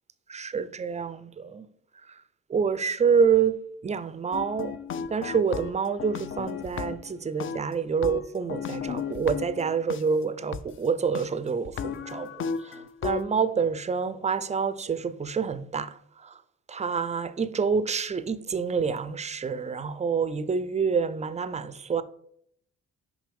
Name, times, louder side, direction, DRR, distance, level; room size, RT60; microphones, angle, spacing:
voice 1, 0.3-1.7 2.1-2.2 2.5-4.8 5.1-16.4 16.7-22.0, right 6 dB, 25° right, 0.4 m, -27 dB
sound 1, 4.3-7.1 7.4-10.0 10.5-10.6 11.1-11.3 11.6-13.2, left 7 dB, 45° left, 0.4 m, -34 dB
6.0 x 5.3 x 3.4 m
cardioid pair, 90°, 30 cm